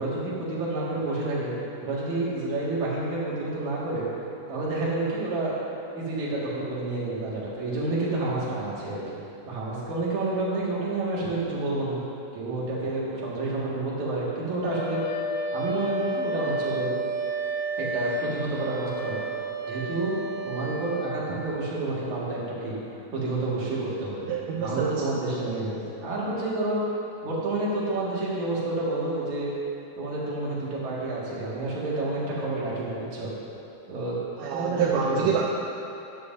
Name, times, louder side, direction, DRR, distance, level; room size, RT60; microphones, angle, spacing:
voice 1, 0.0-1.5 1.8-4.0 4.5-5.5 5.9-9.0 9.5-12.0 12.3-15.0 15.5-16.9 17.8-19.2 19.7-20.2 20.4-22.7 23.1-24.3 24.6-26.8 27.2-29.5 30.0-33.3 33.9-34.2 34.5-35.3, right 2 dB, 70° right, -6 dB, 3.3 m, -29 dB
Wind instrument woodwind instrument, 14.6-21.2, right 2 dB, 70° left, 2.3 m, -31 dB
voice 2, 24.3-25.2 34.4-35.4, right 7 dB, 85° right, -2 dB, 2.2 m, -27 dB
12.5 x 11.5 x 2.7 m, 2.7 s
omnidirectional pair, 3.6 m